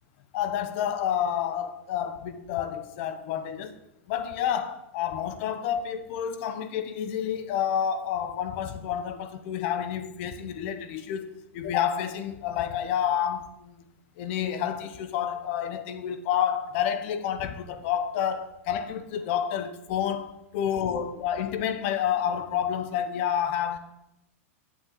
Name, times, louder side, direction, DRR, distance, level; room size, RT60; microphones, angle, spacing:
voice 1, 0.3-3.8 4.1-13.7 14.2-23.8, left 9 dB, 55° left, 0.7 m, -29 dB
7.4 x 5.6 x 3.9 m
hypercardioid pair, 105°, 8 cm